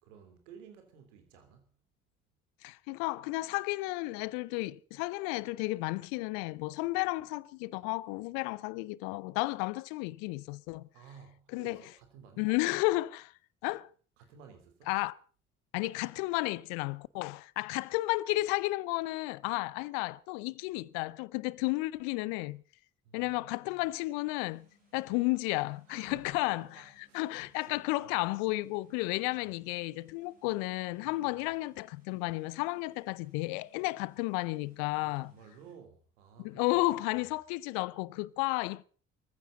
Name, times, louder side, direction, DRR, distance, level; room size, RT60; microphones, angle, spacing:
voice 1, 0.0-1.7 10.9-12.5 14.2-14.9 23.0-23.8 25.9-27.3 27.5-28.3 29.2-29.6 31.0-31.5 35.0-37.3, right 7 dB, 75° right, 3.3 m, -55 dB
voice 2, 2.6-10.9 11.5-11.8 12.4-13.3 13.6-13.9 14.9-15.1 15.7-22.6 23.1-26.8 27.1-35.3 36.4-38.8, left 21 dB, 65° left, 0.7 m, -33 dB
sound 1, 24.4-35.7, left 2 dB, 90° right, 6.2 m, -68 dB
23.0 x 15.0 x 4.0 m
figure-of-eight pair, 50°, 38 cm